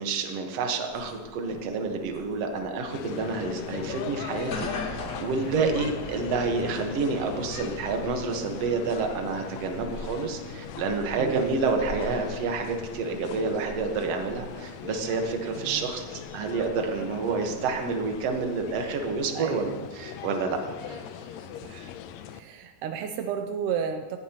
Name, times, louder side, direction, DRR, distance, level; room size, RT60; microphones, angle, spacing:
voice 1, 0.0-19.7 20.0-20.6 20.9-21.0, right 4 dB, 60° right, 4 dB, 2.2 m, -29 dB
sound 1, 0.9-19.1, left 2 dB, 50° left, 1.3 m, -43 dB
sound 2, 2.9-22.4, left 9 dB, 80° left, 1.7 m, -40 dB
voice 2, 5.4-5.8 11.2-11.5 15.6-15.9 19.3-19.9 21.6-21.9 22.3-24.2, right 7 dB, 80° right, 6 dB, 2.1 m, -33 dB
18.5 x 15.5 x 3.0 m, 1.4 s
omnidirectional pair, 3.7 m